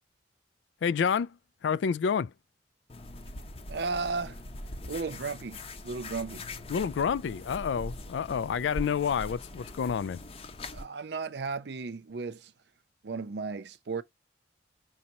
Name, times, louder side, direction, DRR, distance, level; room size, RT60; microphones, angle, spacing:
voice 1, 0.8-1.4 1.6-2.3 6.7-10.2, left 7 dB, 85° left, 0.3 m, -29 dB
sound 1, 2.9-10.8, left 1 dB, 35° left, 0.7 m, -42 dB
voice 2, 3.7-4.4 4.9-6.5 10.7-12.5 13.0-14.0, right 4 dB, 70° right, 0.5 m, -35 dB
5.3 x 3.0 x 2.7 m
head